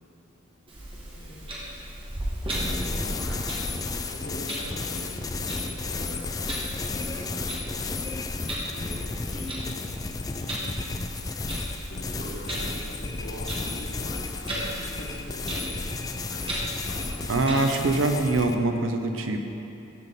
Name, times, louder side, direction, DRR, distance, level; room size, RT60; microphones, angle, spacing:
Clock, 0.7-17.5, right 1 dB, 30° right, 1.6 m, -36 dB
voice 1, 1.1-1.6 2.4-3.7 4.1-8.2 8.6-9.5 9.8-10.0 10.4-11.1 11.9-17.1, equal, 65° left, -4 dB, 1.8 m, -42 dB
sound 1, 2.5-18.6, left 4 dB, 20° left, 0.3 m, -33 dB
voice 2, 17.3-19.5, right 2 dB, 75° right, 5 dB, 0.7 m, -24 dB
13.5 x 5.3 x 4.1 m, 2.9 s
head